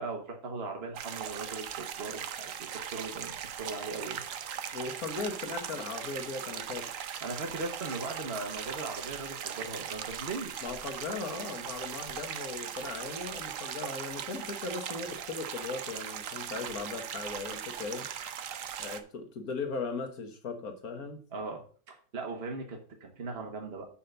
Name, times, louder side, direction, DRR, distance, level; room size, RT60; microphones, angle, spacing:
voice 1, 0.0-4.2 7.2-10.5 21.3-23.9, right 3 dB, 40° right, 2 dB, 1.3 m, -39 dB
sound 1, 0.9-19.0, right 9 dB, 60° right, 0.9 m, -39 dB
voice 2, 4.7-6.9 10.6-18.1 18.8-21.2, left 4 dB, 55° left, 5 dB, 1.7 m, -38 dB
5.7 x 5.6 x 6.5 m, 0.43 s
omnidirectional pair, 2.0 m